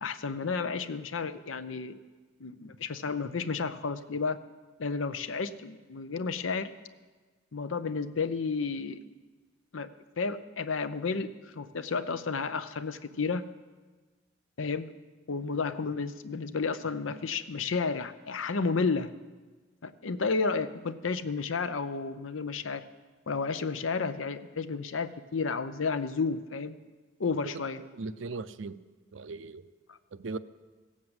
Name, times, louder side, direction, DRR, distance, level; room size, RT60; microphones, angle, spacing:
voice 1, 0.0-2.0 2.4-4.4 4.8-6.7 7.5-9.0 9.7-9.9 10.2-13.5 14.6-14.9 15.3-19.1 19.8-22.8 23.3-26.8 27.2-27.8, left 4 dB, 85° left, 12 dB, 0.7 m, -32 dB
voice 2, 28.0-28.8 29.1-29.6 30.1-30.4, right 3 dB, 75° right, 14 dB, 0.5 m, -38 dB
16.0 x 7.4 x 7.9 m, 1.3 s
head